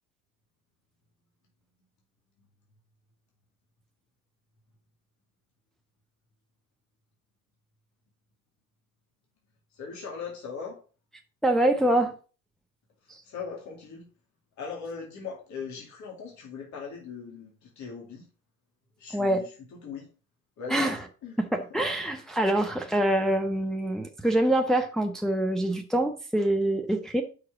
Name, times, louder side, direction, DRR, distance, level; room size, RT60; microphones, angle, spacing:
voice 1, 9.7-10.8 13.2-14.1 14.6-18.3 19.0-20.1 20.6-20.9 21.2-21.8, left 5 dB, 45° left, 2.2 m, -40 dB
voice 2, 11.4-12.1 13.1-13.2 19.1-19.5 20.7-21.0 21.4-27.2, right 1 dB, ahead, 0.8 m, -25 dB
5.6 x 4.8 x 6.0 m
figure-of-eight pair, 65°, 42 cm